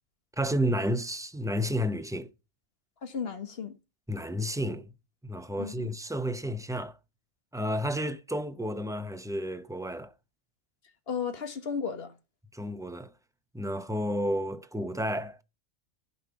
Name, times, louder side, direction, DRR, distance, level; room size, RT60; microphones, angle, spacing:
voice 1, 0.4-2.3 4.1-4.9 5.2-7.0 7.5-10.1 12.5-13.1 13.5-15.4, equal, 5° right, 0.3 m, -31 dB
voice 2, 3.0-3.7 5.6-5.9 11.1-12.1, left 6 dB, 55° left, 1.6 m, -34 dB
15.5 x 5.2 x 5.5 m
omnidirectional pair, 1.3 m